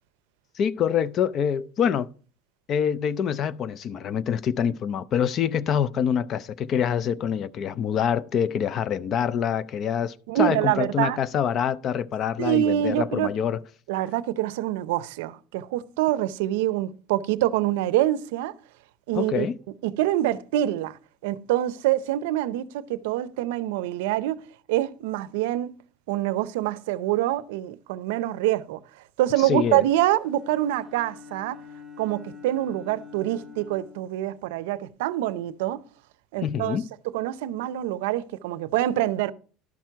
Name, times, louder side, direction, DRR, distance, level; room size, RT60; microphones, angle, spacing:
voice 1, 0.6-2.1 2.7-13.6 19.1-19.5 29.4-29.8 36.4-36.9, left 8 dB, 35° left, 0.4 m, -25 dB
voice 2, 10.3-11.2 12.4-13.3 13.9-18.5 19.1-19.5 19.8-24.4 24.7-25.8 26.1-28.8 29.2-31.6 32.0-35.8 36.3-36.8 37.0-39.3, right 14 dB, 90° right, 0.5 m, -25 dB
Bowed string instrument, 30.2-34.9, left 6 dB, ahead, 1.4 m, -46 dB
12.0 x 6.0 x 4.5 m
cardioid pair, 155°, 0 cm